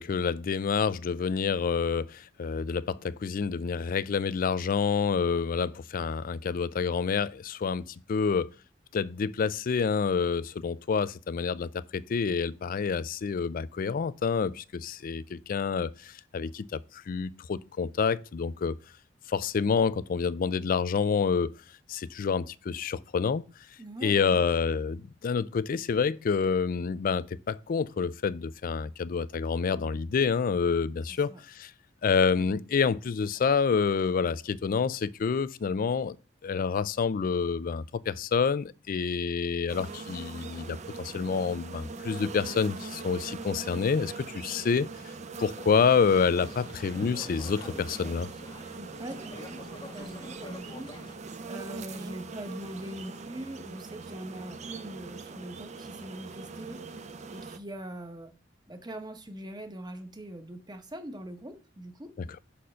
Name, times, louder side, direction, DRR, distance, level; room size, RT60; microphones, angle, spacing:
voice 1, 0.0-7.8 8.1-8.5 8.9-18.7 19.3-21.5 21.9-23.4 24.0-31.7 32.0-36.2 36.4-44.9 45.4-48.3, left 5 dB, 45° left, 0.4 m, -28 dB
voice 2, 23.8-24.4 31.1-31.4 48.7-49.6 49.9-51.2 51.5-58.3 58.7-62.1, right 1 dB, 20° right, 1.0 m, -42 dB
sound 1, 39.7-57.6, right 4 dB, 40° right, 0.6 m, -42 dB
sound 2, 46.1-51.2, left 2 dB, 25° left, 0.9 m, -47 dB
6.3 x 4.3 x 5.6 m
head